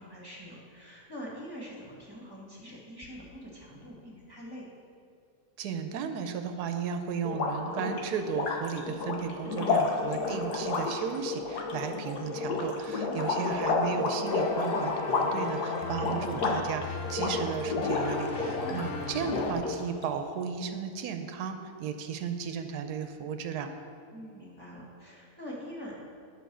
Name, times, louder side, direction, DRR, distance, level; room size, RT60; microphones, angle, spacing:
voice 1, 0.0-4.7 13.0-13.6 18.6-18.9 24.1-26.0, equal, 15° right, -4 dB, 1.7 m, -44 dB
voice 2, 5.6-23.7, right 6 dB, 85° right, 7 dB, 1.2 m, -35 dB
sound 1, 7.2-18.9 19.2-20.0, left 3 dB, 80° left, 1.6 m, -30 dB
sound 2, 14.3-19.5, left 3 dB, 55° left, 0.6 m, -38 dB
9.2 x 5.3 x 6.2 m, 2.4 s
omnidirectional pair, 1.7 m